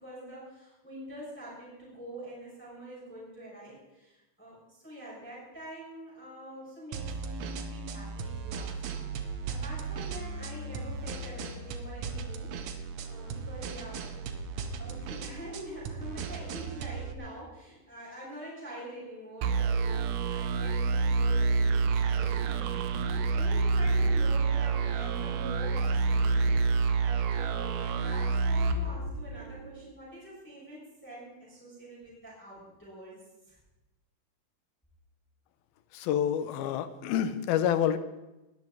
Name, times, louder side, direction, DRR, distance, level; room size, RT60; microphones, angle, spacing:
voice 1, 0.0-12.7 13.0-14.3 14.5-22.7 23.0-33.2 33.5-33.6, right 1 dB, 5° left, -7 dB, 6.7 m, -45 dB
sound 1, 6.9-17.1, right 5 dB, 65° right, 1.8 m, -37 dB
sound 2, 19.4-29.7, right 4 dB, 85° right, 3.0 m, -27 dB
voice 2, 35.9-38.0, left 9 dB, 85° left, 13 dB, 2.8 m, -28 dB
19.5 x 13.5 x 4.6 m, 1.0 s
omnidirectional pair, 4.2 m